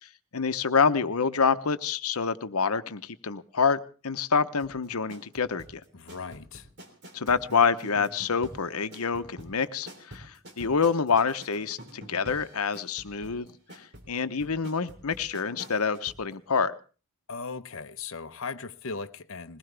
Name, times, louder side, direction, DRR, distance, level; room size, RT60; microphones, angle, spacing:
voice 1, 0.0-5.8 7.1-16.7, left 5 dB, 90° left, 0.9 m, -27 dB
sound 1, 4.6-16.2 16.5-16.6, equal, 50° right, 3.3 m, -47 dB
voice 2, 5.9-6.7 17.3-19.6, left 4 dB, 65° left, 0.8 m, -38 dB
21.5 x 19.0 x 3.4 m
head